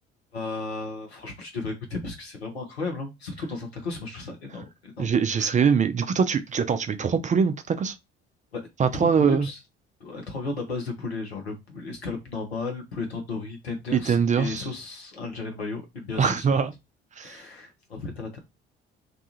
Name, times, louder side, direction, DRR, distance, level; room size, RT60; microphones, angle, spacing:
voice 1, 0.3-5.5 8.5-9.6 10.0-16.5 17.2-18.4, left 3 dB, 90° left, 0.8 m, -34 dB
voice 2, 5.0-8.0 8.8-9.5 13.9-14.7 16.2-16.7 17.2-17.4, right 6 dB, 25° right, 0.4 m, -23 dB
2.6 x 2.3 x 2.7 m
figure-of-eight pair, 50°, 31 cm